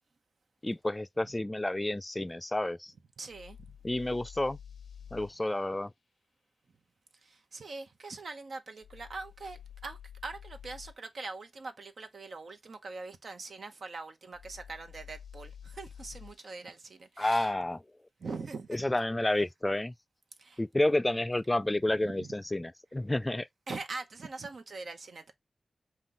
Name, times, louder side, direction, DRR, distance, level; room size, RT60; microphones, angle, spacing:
voice 1, 0.6-2.9 3.8-4.6 5.1-5.9 17.2-17.8 18.7-19.9 20.6-23.5, left 1 dB, 20° left, 0.3 m, -30 dB
voice 2, 3.2-3.6 7.2-17.5 18.2-18.8 20.4-20.6 22.0-22.3 23.7-25.3, right 3 dB, 80° right, 0.8 m, -42 dB
sound 1, 3.3-5.4 8.8-11.0 14.3-16.4, left 8 dB, 90° left, 0.4 m, -49 dB
5.6 x 2.3 x 3.7 m
cardioid pair, 60°, 0 cm